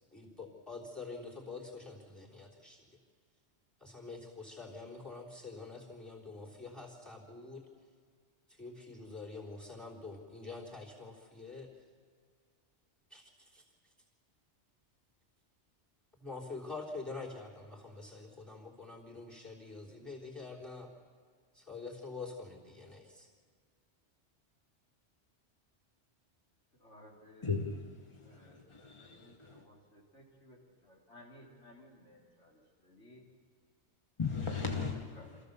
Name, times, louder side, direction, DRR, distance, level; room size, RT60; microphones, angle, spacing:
voice 1, 0.1-3.0 3.8-7.7 8.5-11.7 13.1-13.9 16.2-20.9 21.5-23.3, left 3 dB, ahead, -1 dB, 3.6 m, -46 dB
voice 2, 26.8-27.6 28.2-28.6 28.9-30.6 30.8-33.2 34.6-35.4, left 1 dB, 85° left, -3 dB, 3.8 m, -57 dB
voice 3, 27.4-28.4 28.7-29.6 34.2-35.2, left 5 dB, 25° left, 2 dB, 1.1 m, -37 dB
26.5 x 15.0 x 6.8 m, 2.1 s
omnidirectional pair, 1.2 m